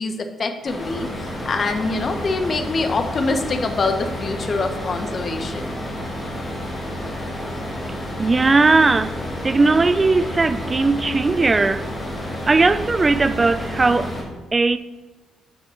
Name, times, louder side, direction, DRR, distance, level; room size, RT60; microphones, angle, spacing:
voice 1, 0.0-5.8, left 3 dB, 40° left, 0.8 m, -25 dB
sound 1, 0.7-14.2, left 1 dB, 25° left, 2.6 m, -30 dB
voice 2, 8.2-9.2 9.4-11.9 12.5-14.2 14.5-14.8, right 3 dB, 25° right, 0.3 m, -18 dB
6.3 x 5.9 x 4.5 m
cardioid pair, 90°, 0 cm